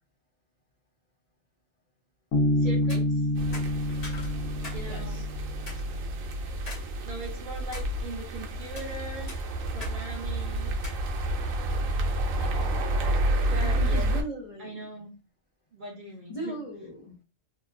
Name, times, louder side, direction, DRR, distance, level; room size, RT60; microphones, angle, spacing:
Bass guitar, 2.3-5.9, left 1 dB, 90° left, 1.1 m, -27 dB
voice 1, 2.6-3.3 4.7-5.2 7.0-9.3 9.7-10.7 12.4-12.7 13.4-14.1 14.6-15.1 15.7-16.6, right 2 dB, 60° right, 0 dB, 0.5 m, -40 dB
sound 1, 2.8-3.0 3.5-4.8 5.2-5.3 5.7-5.8 6.7-6.9 7.3-7.9 8.5-8.9 9.3-10.0 10.2-10.3 10.8-11.0, left 2 dB, 35° left, 0.9 m, -42 dB
sound 2, 3.3-14.2, right 1 dB, 80° right, 1.0 m, -30 dB
voice 2, 4.9-5.2 13.6-14.9 16.3-17.2, right 1 dB, 55° left, -3 dB, 0.4 m, -38 dB
2.8 x 2.3 x 2.3 m, 0.31 s
omnidirectional pair, 1.3 m